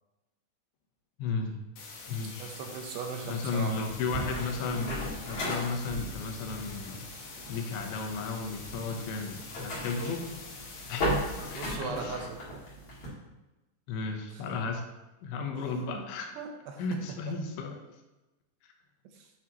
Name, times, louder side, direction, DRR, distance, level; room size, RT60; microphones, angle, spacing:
voice 1, 1.2-1.6 2.1-2.5 3.3-4.9 5.3-7.1 7.5-10.3 10.9-12.1 13.9-14.9 15.2-16.3 16.8-17.8, left 4 dB, 85° left, 3 dB, 3.2 m, -34 dB
sound 1, 1.8-11.8, left 4 dB, 70° left, 1.9 m, -46 dB
voice 2, 2.4-3.9 11.5-12.4 14.3-14.4 15.5-16.1 16.4-17.3 19.1-19.3, right 5 dB, 80° right, 3 dB, 2.7 m, -39 dB
sound 2, 3.9-13.1, equal, 40° left, 2.6 m, -37 dB
9.5 x 6.0 x 2.9 m, 1.0 s
omnidirectional pair, 5.2 m